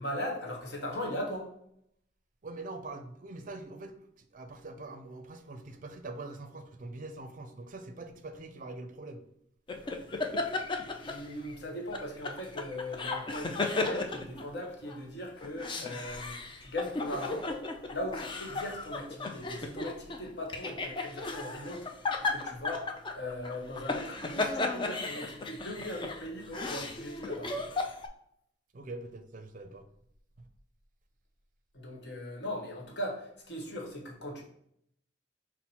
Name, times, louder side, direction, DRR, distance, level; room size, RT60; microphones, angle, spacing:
voice 1, 0.0-1.5 11.0-17.5 17.9-21.9 22.2-22.9 23.1-27.5 31.7-34.4, left 1 dB, 65° left, 0 dB, 1.2 m, -39 dB
voice 2, 2.4-9.2 28.7-29.8, right 2 dB, 45° right, 8 dB, 0.5 m, -43 dB
sound 1, 9.7-11.6 11.9-15.0 15.4-28.1, left 3 dB, 25° left, 0.4 m, -35 dB
5.8 x 2.1 x 4.2 m, 0.72 s
head